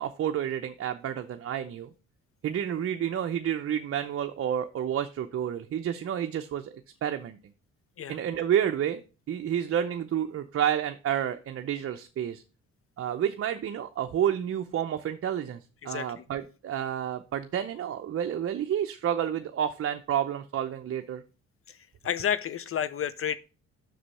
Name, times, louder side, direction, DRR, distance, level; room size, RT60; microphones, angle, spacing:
voice 1, 0.0-1.9 2.4-6.7 7.0-7.4 8.1-9.0 9.3-12.4 13.0-21.2, right 9 dB, 50° right, 6 dB, 0.6 m, -30 dB
voice 2, 15.8-16.2 21.7-21.8 22.0-23.4, left 9 dB, 50° left, 16 dB, 0.5 m, -30 dB
6.2 x 5.0 x 5.5 m, 0.33 s
cardioid pair, 90°, 30 cm